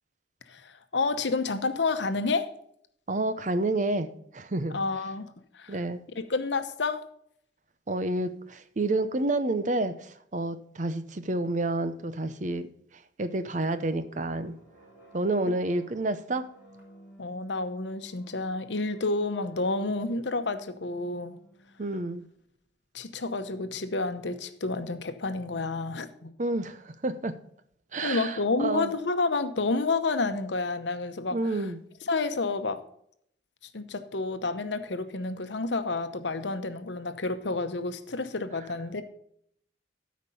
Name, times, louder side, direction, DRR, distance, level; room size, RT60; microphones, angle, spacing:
voice 1, 0.5-2.5 4.7-5.8 6.2-7.0 17.2-21.4 22.9-26.3 28.0-31.4 32.1-32.8 33.7-39.0, left 3 dB, 80° left, 10 dB, 0.9 m, -30 dB
voice 2, 3.1-4.8 5.7-6.0 7.9-12.7 12.9-14.5 15.1-16.4 21.8-22.2 26.4-27.3 27.9-28.9 31.3-31.8, right 2 dB, 45° right, 11 dB, 0.7 m, -29 dB
sound 1, 13.2-22.0, equal, 10° right, 3.7 m, -55 dB
13.0 x 5.2 x 5.3 m, 0.69 s
head